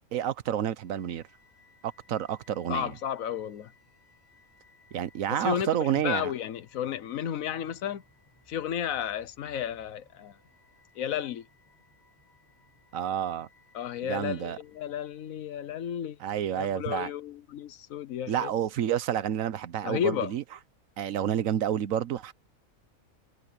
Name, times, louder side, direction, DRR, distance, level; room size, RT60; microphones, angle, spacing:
voice 1, 0.1-1.2 1.8-2.9 4.9-6.3 12.9-13.5 14.0-14.6 16.2-17.1 18.3-20.4 21.0-22.3, right 10 dB, 80° right, 1.3 m, -29 dB
sound 1, 0.8-16.0, left 3 dB, 15° left, 7.2 m, -63 dB
voice 2, 2.7-3.7 5.3-8.0 8.5-10.4 11.0-11.4 13.7-16.2 16.5-18.5 19.8-20.3, left 9 dB, 90° left, 1.3 m, -33 dB
omnidirectional pair, 1.4 m